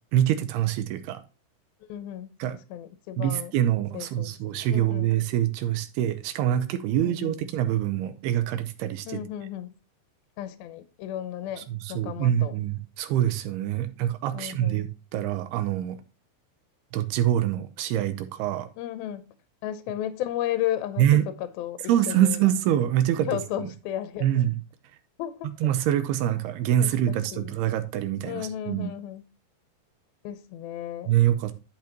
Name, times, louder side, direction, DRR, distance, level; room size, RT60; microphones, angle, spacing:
voice 1, 0.1-1.2 2.4-2.6 3.2-9.2 11.6-16.0 16.9-18.7 21.0-21.2 21.9-23.4 24.2-24.6 25.6-28.9 31.1-31.5, right 11 dB, 80° right, 2.6 m, -25 dB
voice 2, 1.8-2.4 2.7-3.5 3.9-4.3 4.7-5.1 7.0-7.4 9.1-9.7 10.4-12.6 14.3-14.9 18.8-19.3 19.6-22.4 23.3-24.3 25.2-25.5 26.8-27.6 28.2-29.3 30.2-31.2, left 11 dB, 75° left, 2.3 m, -34 dB
12.0 x 6.0 x 2.9 m
omnidirectional pair, 5.0 m